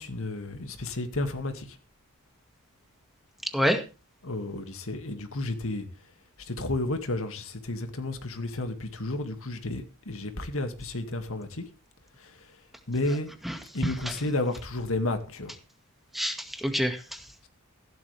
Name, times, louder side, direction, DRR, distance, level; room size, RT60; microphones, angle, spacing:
voice 1, 0.0-1.8 4.2-5.9 6.4-11.6 12.2-12.6 12.9-13.3 13.7-15.6, left 2 dB, 65° left, 2.3 m, -32 dB
voice 2, 3.4-3.8 13.4-14.1 16.1-17.3, equal, ahead, 2.0 m, -28 dB
15.5 x 12.5 x 3.5 m
head